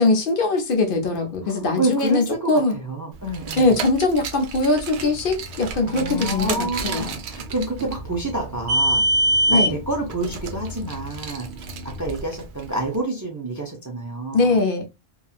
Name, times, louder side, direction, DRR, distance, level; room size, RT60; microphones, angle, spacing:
voice 1, 0.0-2.8 3.6-7.1 9.5-9.7 14.3-14.8, left 3 dB, 60° left, 0.8 m, -21 dB
voice 2, 1.4-3.8 5.9-9.0 9.5-14.6, right 2 dB, 25° right, 0.4 m, -28 dB
Car, 3.3-12.8, right 1 dB, 90° right, 0.8 m, -26 dB
sound 1, 4.9-12.0, left 2 dB, 60° right, 0.7 m, -41 dB
2.8 x 2.2 x 2.3 m
omnidirectional pair, 1.1 m